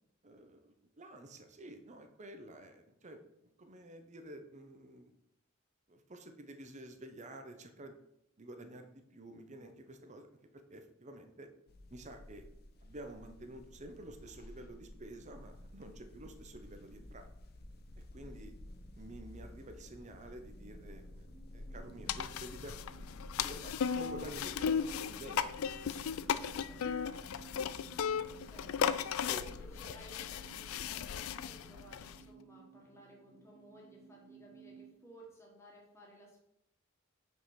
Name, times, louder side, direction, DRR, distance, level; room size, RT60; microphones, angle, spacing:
voice 1, 0.2-3.2 3.6-5.1 5.9-8.0 8.4-10.3 10.5-11.5 11.9-12.5 12.8-17.3 18.1-18.5 19.0-21.3 21.5-22.8 23.4-25.4 25.9-26.1 28.4-28.5 29.3-29.4, right 1 dB, 35° right, 6 dB, 0.7 m, -50 dB
sound 1, 11.7-30.0, left 1 dB, 50° left, 0.7 m, -53 dB
voice 2, 18.1-18.4 26.7-27.3 28.5-36.4, right 1 dB, 15° left, -3 dB, 1.4 m, -57 dB
sound 2, 21.3-34.9, right 5 dB, 5° right, 0.9 m, -59 dB
sound 3, 22.1-32.2, left 7 dB, 80° left, 0.4 m, -36 dB
5.4 x 4.9 x 5.8 m, 0.79 s
head